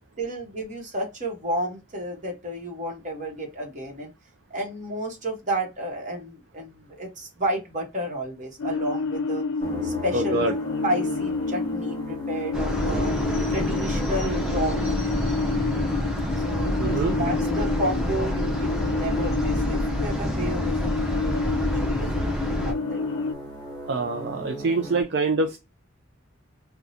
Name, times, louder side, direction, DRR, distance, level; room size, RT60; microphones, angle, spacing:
voice 1, 0.2-4.1 4.5-9.4 9.8-10.4 10.8-13.1 13.5-14.8 16.4-23.0, right 1 dB, 40° right, 1 dB, 1.2 m, -31 dB
sound 1, 8.6-23.3, left 4 dB, 85° left, 0.4 m, -29 dB
sound 2, 9.6-25.0, equal, 20° left, 1.0 m, -36 dB
voice 2, 10.1-10.6 16.8-17.2 23.9-25.6, right 3 dB, 55° right, 5 dB, 0.4 m, -25 dB
sound 3, 12.5-22.7, equal, 5° right, 0.7 m, -28 dB
3.7 x 2.2 x 2.7 m, 0.25 s
head